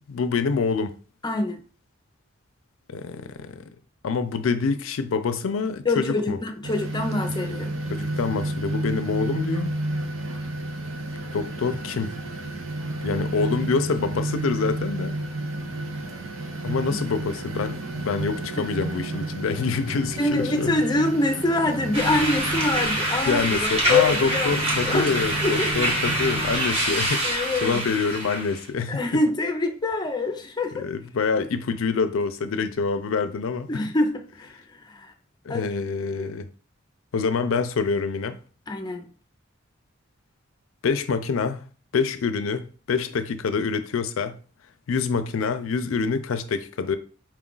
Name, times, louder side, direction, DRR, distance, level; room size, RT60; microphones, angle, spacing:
voice 1, 0.1-1.0 2.9-3.6 4.0-6.4 7.9-9.7 11.3-12.1 13.0-15.1 16.6-20.8 23.2-29.0 30.7-33.9 35.5-36.5 37.1-38.4 40.8-41.6 41.9-44.4 44.9-47.0, left 5 dB, 85° left, 0.4 m, -26 dB
voice 2, 1.2-1.6 5.8-7.7 16.9-17.0 18.6-18.7 20.2-25.1 25.4-25.7 27.2-27.8 28.9-30.9 33.7-34.5 34.9-35.1 35.5-35.7 36.2-36.3 38.7-39.1, left 2 dB, 20° left, 0.5 m, -25 dB
sound 1, 6.6-26.6, right 1 dB, 85° right, 0.7 m, -31 dB
sound 2, 21.9-28.6, right 1 dB, 30° right, 1.1 m, -26 dB
4.5 x 2.4 x 3.8 m
head